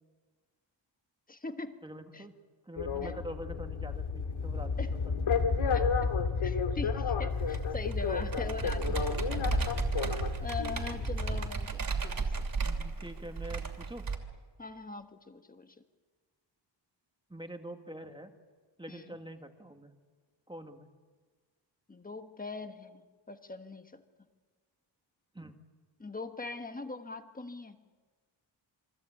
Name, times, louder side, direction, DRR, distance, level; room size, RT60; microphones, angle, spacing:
voice 1, 1.3-1.8 2.1-2.2 3.0-3.1 4.8-4.9 5.7-6.1 6.4-9.7 10.0-10.1 10.4-12.4 14.6-15.7 18.9-19.1 21.9-24.0 26.0-27.8, left 3 dB, 20° left, 7 dB, 1.4 m, -42 dB
voice 2, 1.8-2.3 2.6-4.7 12.6-14.1 17.3-18.3 18.8-19.9 20.5-20.9 25.3-25.5, right 1 dB, 10° right, 5 dB, 1.6 m, -45 dB
sound 1, 2.8-11.5, left 5 dB, 85° left, 2.3 m, -31 dB
Computer keyboard, 7.4-14.1, right 5 dB, 45° right, 2.8 m, -35 dB
28.0 x 23.0 x 8.6 m, 1.5 s
wide cardioid pair, 175°, 46 cm